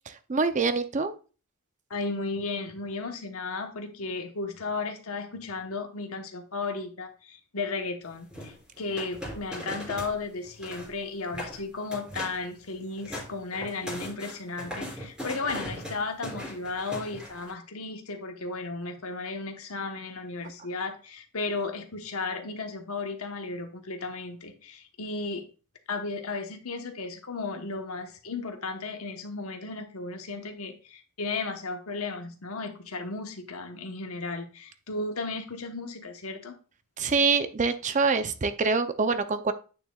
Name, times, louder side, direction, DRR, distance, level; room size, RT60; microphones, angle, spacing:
voice 1, 0.1-1.1 37.0-39.5, right 4 dB, 35° right, 11 dB, 0.5 m, -25 dB
voice 2, 1.9-25.4 25.9-36.5, left 3 dB, 75° left, 5 dB, 1.2 m, -34 dB
sound 1, 8.3-10.2 10.4-10.9 11.3-11.6 11.9-12.4 12.8-17.5, equal, 5° right, 3.4 m, -39 dB
9.0 x 6.4 x 2.4 m, 0.36 s
head